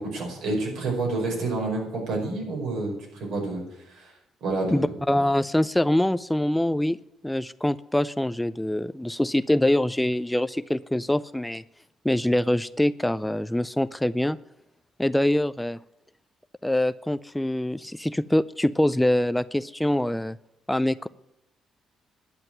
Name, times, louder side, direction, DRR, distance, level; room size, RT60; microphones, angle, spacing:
voice 1, 0.0-4.1 4.4-4.9, right 2 dB, 85° right, 0 dB, 5.2 m, -29 dB
voice 2, 4.7-7.0 7.2-11.6 12.0-14.4 15.0-15.8 16.6-20.4 20.7-21.1, left 1 dB, 5° left, 16 dB, 0.4 m, -24 dB
11.0 x 7.7 x 9.1 m, 0.82 s
cardioid pair, 90°, 0 cm